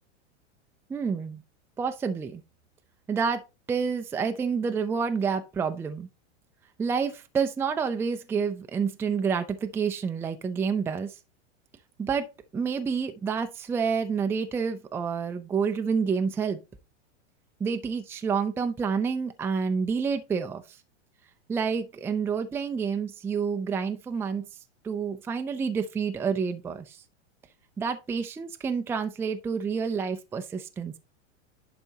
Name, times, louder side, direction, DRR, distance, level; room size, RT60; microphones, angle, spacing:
voice 1, 0.9-1.4 1.8-2.4 3.1-6.1 6.8-11.1 12.0-16.6 17.6-20.6 21.5-24.4 24.8-27.0 27.8-31.0, right 6 dB, 5° right, 0.4 m, -28 dB
10.5 x 4.2 x 2.8 m
hypercardioid pair, 135°, 37 cm